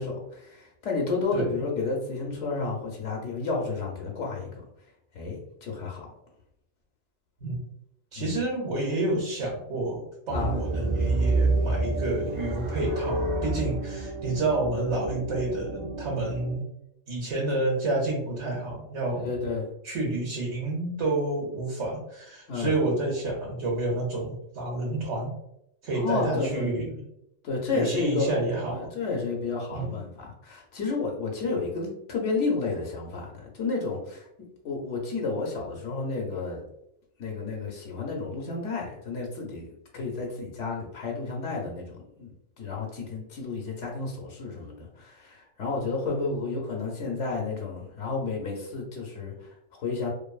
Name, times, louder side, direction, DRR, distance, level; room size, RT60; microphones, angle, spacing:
voice 1, 0.0-4.5 5.1-6.1 8.2-8.4 10.3-10.6 19.2-19.7 22.5-22.8 25.9-26.8 27.4-28.3 28.7-34.3 34.6-36.6 37.2-50.1, left 4 dB, 80° left, -1 dB, 0.9 m, -31 dB
voice 2, 8.1-16.6 17.1-19.3 19.8-25.3 25.8-26.9 27.7-28.9 29.7-29.9 46.0-46.6, right 2 dB, 70° right, -3 dB, 1.0 m, -29 dB
sound 1, 10.3-16.5, right 2 dB, 55° right, 0.5 m, -28 dB
2.5 x 2.5 x 2.3 m, 0.82 s
omnidirectional pair, 1.2 m